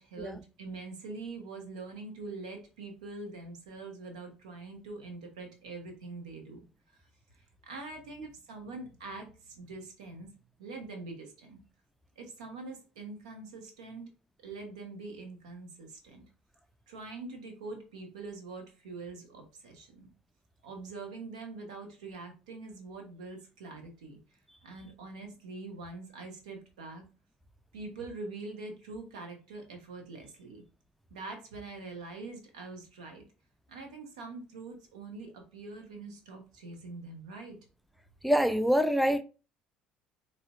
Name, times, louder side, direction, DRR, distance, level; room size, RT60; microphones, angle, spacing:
voice 1, 0.0-6.6 6.9-7.0 7.6-10.3 10.6-11.6 12.2-14.1 14.4-16.2 16.9-20.1 20.6-24.2 24.6-27.0 27.7-30.6 31.1-33.2 33.7-37.6, right 3 dB, 85° right, 0.7 m, -44 dB
voice 2, 38.2-39.2, equal, ahead, 0.3 m, -25 dB
3.8 x 2.1 x 2.3 m
hypercardioid pair, 70°, 4 cm